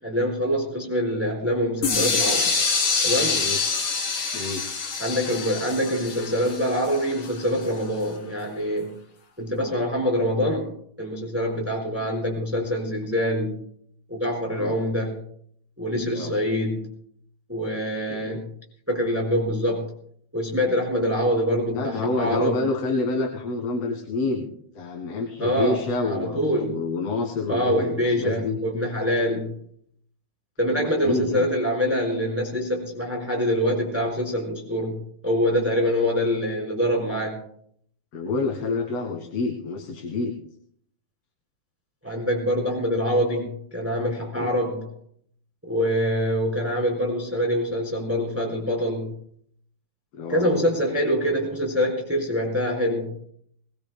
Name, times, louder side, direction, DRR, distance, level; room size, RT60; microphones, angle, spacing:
voice 1, 0.0-2.5 3.0-3.4 5.0-8.9 9.4-13.6 14.1-15.2 15.8-16.8 17.5-18.5 18.9-19.9 20.3-22.6 25.4-25.8 26.0-26.7 27.5-29.5 30.6-35.0 35.2-37.4 42.0-44.9 45.6-49.1 50.3-53.3, equal, 5° right, 0 dB, 4.4 m, -25 dB
sound 1, 1.8-7.6, left 4 dB, 75° left, 4.8 m, -26 dB
voice 2, 3.3-3.8 4.3-4.6 9.6-9.7 11.9-12.0 14.6-14.8 16.1-16.3 18.1-18.4 21.7-28.6 30.7-31.5 38.1-40.3 44.4-44.5 50.1-50.5, left 3 dB, 55° left, 2 dB, 2.6 m, -28 dB
22.0 x 20.5 x 2.2 m, 0.63 s
omnidirectional pair, 3.7 m